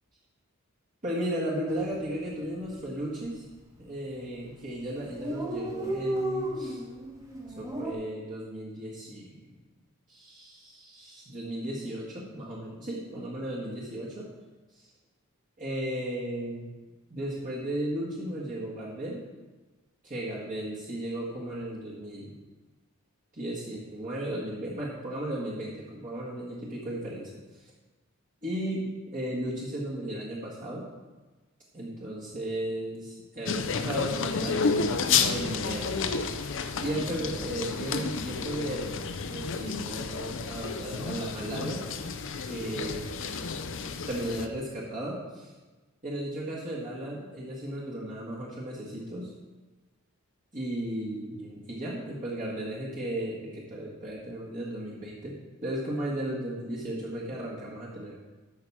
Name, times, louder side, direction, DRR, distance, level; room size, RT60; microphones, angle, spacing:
voice 1, 1.0-3.4 3.8-6.8 7.6-9.5 10.1-14.3 14.8-14.9 15.6-16.7 17.1-19.2 20.0-22.4 23.3-27.7 28.4-30.9 31.7-36.0 36.8-41.9 42.5-43.1 44.1-45.5 46.0-49.3 50.5-58.1, right 1 dB, 40° right, -6 dB, 1.8 m, -35 dB
Dog, 1.7-2.0 2.3-2.4 2.6-3.3 3.9-4.1 4.5-4.6 4.7-4.8 5.0-7.9, right 1 dB, 15° right, 1.3 m, -33 dB
sound 1, 33.5-44.5, left 5 dB, 65° left, 0.7 m, -31 dB
13.0 x 5.8 x 4.8 m, 1.2 s
head